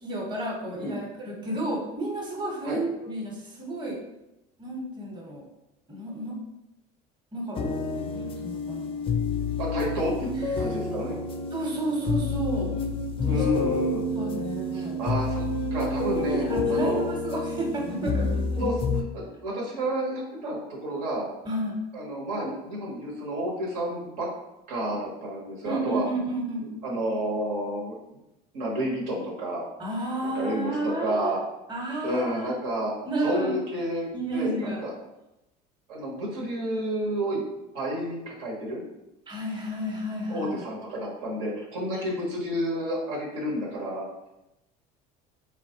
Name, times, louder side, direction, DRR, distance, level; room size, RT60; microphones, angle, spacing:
voice 1, 0.0-4.0 4.6-5.5 5.9-6.4 7.3-7.6 8.0-8.9 10.5-10.7 11.5-12.8 13.2-13.4 14.1-14.9 16.1-18.6 21.4-21.8 25.6-26.7 29.8-31.3 31.7-32.5 33.1-33.6 34.1-34.8 39.3-40.6 41.9-42.0, right 1 dB, 20° right, -1 dB, 0.9 m, -31 dB
sound 1, 7.5-19.0, left 3 dB, 25° left, 0.4 m, -29 dB
voice 2, 9.6-10.3 10.6-11.2 13.2-14.0 14.7-16.4 16.7-17.0 18.6-18.7 19.1-21.3 21.9-24.3 24.7-26.0 26.6-28.0 28.5-29.6 30.2-31.4 32.0-32.9 33.2-34.9 35.9-37.4 37.7-38.8 40.3-44.0, equal, 85° right, -3 dB, 1.0 m, -30 dB
3.4 x 2.3 x 2.7 m, 0.92 s
supercardioid pair, 95°, 20 cm